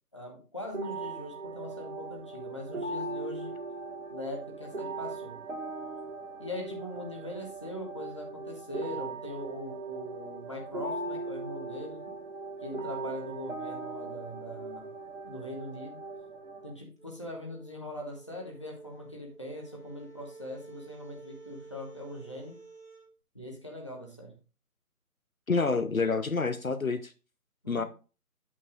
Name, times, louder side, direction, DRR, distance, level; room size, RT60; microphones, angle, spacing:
voice 1, 0.1-3.6 4.1-5.4 6.4-12.0 12.6-14.9 15.2-16.0 16.6-22.6 23.3-24.4 27.6-27.8, left 1 dB, 20° left, 1.1 m, -41 dB
sound 1, 0.7-16.7, right 3 dB, 50° right, 1.7 m, -39 dB
sound 2, 17.0-23.1, right 3 dB, 75° right, 2.5 m, -51 dB
voice 2, 25.5-27.1 27.7-27.8, left 4 dB, 60° left, 0.8 m, -28 dB
8.8 x 8.5 x 2.5 m
figure-of-eight pair, 165°, 47 cm